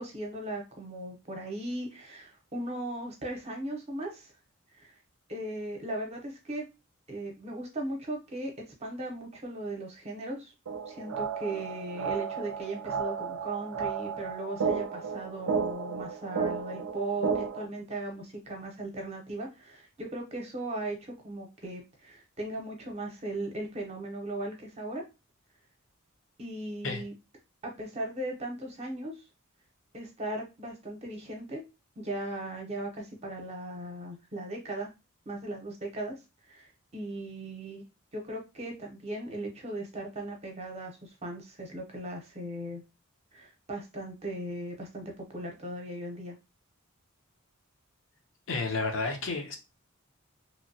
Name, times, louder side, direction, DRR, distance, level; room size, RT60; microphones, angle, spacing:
voice 1, 0.0-4.3 4.7-4.9 5.3-6.6 7.1-8.5 8.8-10.5 10.9-25.0 26.4-27.1 27.6-29.1 29.9-31.6 32.0-34.9 35.3-36.1 36.5-37.8 38.1-42.8 43.3-46.3, right 1 dB, 30° right, 0.7 m, -37 dB
sound 1, 10.7-17.7, right 6 dB, 75° right, 0.4 m, -33 dB
voice 2, 48.5-49.6, left 3 dB, 60° left, 0.6 m, -31 dB
2.9 x 2.2 x 2.7 m
head